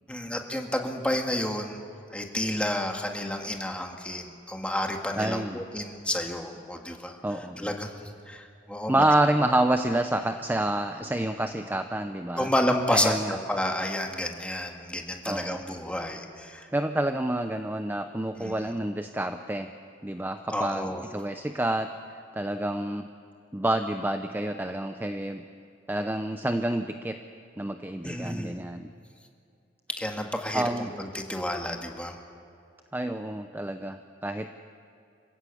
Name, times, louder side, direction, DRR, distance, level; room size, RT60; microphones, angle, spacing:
voice 1, 0.1-1.8 2.1-7.2 7.6-8.9 12.4-16.7 18.4-18.5 20.5-21.0 28.0-28.6 30.0-32.1, left 1 dB, 5° left, 2 dB, 1.9 m, -30 dB
voice 2, 5.1-5.6 7.2-7.7 8.9-12.5 12.9-13.4 15.3-15.6 16.7-19.7 20.0-23.1 23.5-25.4 25.9-27.2 27.6-28.9 30.5-30.9 32.9-34.5, right 1 dB, 10° right, 7 dB, 0.6 m, -28 dB
26.5 x 16.0 x 8.4 m, 2.6 s
head